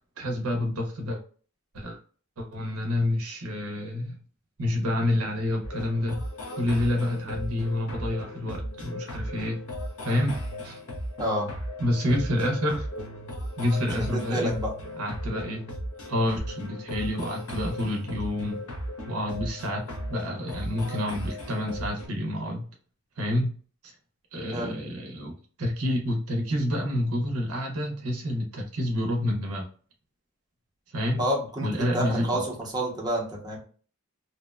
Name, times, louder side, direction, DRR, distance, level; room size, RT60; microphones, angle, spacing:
voice 1, 0.2-1.2 1.7-2.0 2.4-4.2 4.6-6.2 6.6-9.6 10.0-10.4 10.6-10.8 11.8-12.9 13.6-14.5 15.0-15.6 16.1-18.6 19.0-19.8 20.1-22.6 23.2-23.5 23.8-23.9 24.3-25.3 25.6-29.7 30.9-31.3 31.6-32.4, left 1 dB, 75° right, 1 dB, 0.6 m, -28 dB
sound 1, 5.6-22.1, equal, 70° left, 0.7 m, -36 dB
voice 2, 14.0-14.7 24.5-24.8 31.2-33.6, right 1 dB, 20° right, -3 dB, 0.7 m, -29 dB
2.7 x 2.1 x 2.2 m, 0.41 s
head